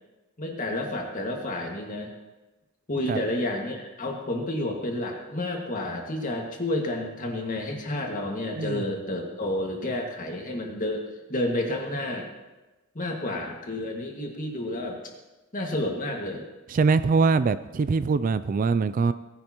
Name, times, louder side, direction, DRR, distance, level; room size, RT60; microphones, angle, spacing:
voice 1, 0.4-2.1 2.9-11.0 11.3-12.3 12.9-15.0 15.5-16.5, left 1 dB, 40° left, 0 dB, 2.0 m, -30 dB
voice 2, 16.7-19.1, right 4 dB, 40° right, 14 dB, 0.3 m, -23 dB
18.5 x 10.5 x 3.0 m, 1.1 s
head